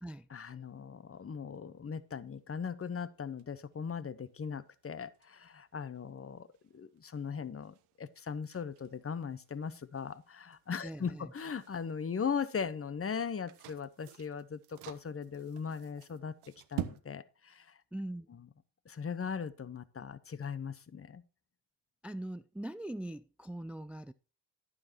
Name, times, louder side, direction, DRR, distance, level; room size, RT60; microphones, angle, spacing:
voice 1, 0.3-6.5 6.7-16.3 16.7-17.8 18.9-21.2, left 6 dB, 25° left, 1.0 m, -39 dB
sound 1, 0.6-17.0, right 14 dB, 75° right, 1.1 m, -50 dB
voice 2, 10.8-11.3 17.9-18.3 22.0-24.1, right 1 dB, 5° right, 0.4 m, -41 dB
11.0 x 9.8 x 2.9 m
hypercardioid pair, 50°, 49 cm